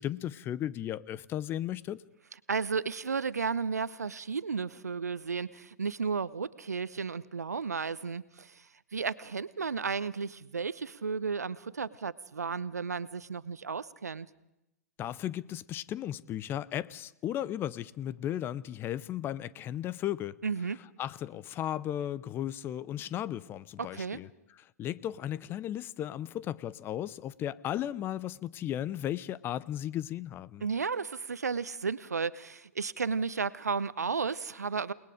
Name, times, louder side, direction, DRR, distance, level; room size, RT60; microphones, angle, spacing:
voice 1, 0.0-2.0 15.0-20.4 21.0-24.3 24.8-30.6, left 11 dB, 25° left, 0.7 m, -35 dB
voice 2, 2.5-8.7 8.9-14.3 20.4-20.8 23.8-24.2 30.6-34.9, right 5 dB, 80° right, 0.9 m, -33 dB
29.0 x 20.0 x 5.0 m
figure-of-eight pair, 110°, 9 cm